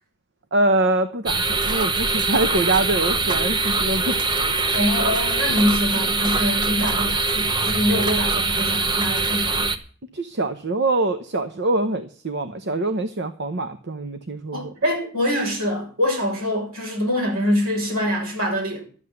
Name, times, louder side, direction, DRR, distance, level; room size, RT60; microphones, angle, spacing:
voice 1, 0.5-4.2 10.1-14.7, right 2 dB, 50° right, 10 dB, 0.9 m, -24 dB
sound 1, 1.3-9.8, right 3 dB, 20° right, 0.9 m, -23 dB
voice 2, 4.7-9.7 14.5-18.8, left 1 dB, 70° right, 0 dB, 6.9 m, -24 dB
12.5 x 7.8 x 9.4 m, 0.43 s
head